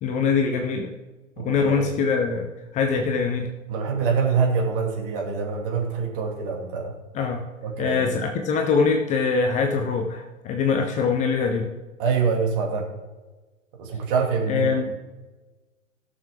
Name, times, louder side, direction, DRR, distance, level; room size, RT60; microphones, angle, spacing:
voice 1, 0.0-0.9 1.4-2.5 2.7-3.5 7.1-7.4 7.8-11.7 14.5-14.9, left 5 dB, 20° left, 4 dB, 0.7 m, -23 dB
voice 2, 1.4-1.9 3.7-6.9 7.6-8.1 12.0-12.9 13.7-14.8, right 5 dB, 40° right, 1 dB, 2.4 m, -25 dB
16.5 x 6.9 x 3.6 m, 1.2 s
figure-of-eight pair, 110°, 39 cm